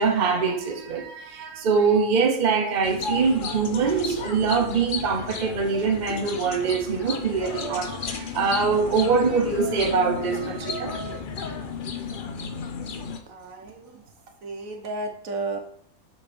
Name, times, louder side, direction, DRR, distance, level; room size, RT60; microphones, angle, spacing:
voice 1, 0.0-11.2, right 5 dB, 35° right, 0.9 m, -23 dB
sound 1, 2.8-13.2, left 6 dB, 50° left, 0.6 m, -34 dB
voice 2, 13.3-14.0 14.4-15.6, right 3 dB, 65° right, 1.3 m, -33 dB
7.3 x 3.5 x 5.0 m
omnidirectional pair, 1.5 m